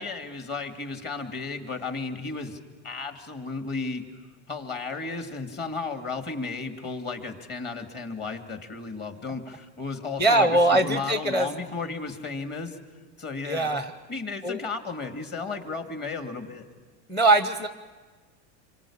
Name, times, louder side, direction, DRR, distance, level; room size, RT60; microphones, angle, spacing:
voice 1, 0.0-2.6 2.8-4.1 4.5-12.8 13.2-13.8 14.1-16.7, left 4 dB, 30° left, 6 dB, 2.6 m, -34 dB
voice 2, 10.2-11.5 13.4-13.9 14.4-14.6 17.1-17.7, right 2 dB, 5° left, 10 dB, 0.9 m, -22 dB
27.0 x 23.5 x 8.8 m, 1.4 s
supercardioid pair, 145°, 36 cm